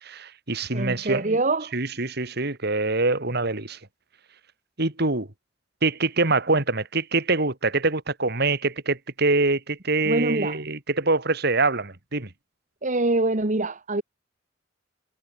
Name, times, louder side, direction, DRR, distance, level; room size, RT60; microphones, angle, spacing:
voice 1, 0.0-1.4 1.7-3.8 4.8-5.3 5.8-12.3, right 3 dB, 60° right, 3.2 m, -24 dB
voice 2, 0.7-1.7 10.0-10.6 12.8-14.0, right 2 dB, 40° right, 1.6 m, -24 dB
head